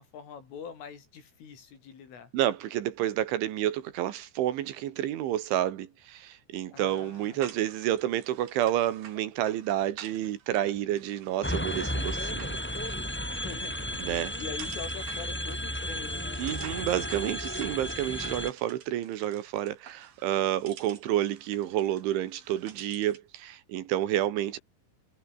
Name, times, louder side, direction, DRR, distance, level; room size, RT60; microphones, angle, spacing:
voice 1, 0.0-2.3 6.7-7.5 13.2-16.5, left 7 dB, 75° left, 7.5 m, -44 dB
voice 2, 2.3-12.6 14.0-14.3 16.4-24.6, right 12 dB, 75° right, 3.9 m, -29 dB
sound 1, 6.9-23.3, right 9 dB, 55° right, 3.7 m, -51 dB
sound 2, 11.4-18.5, equal, 5° left, 1.7 m, -33 dB
omnidirectional pair, 5.8 m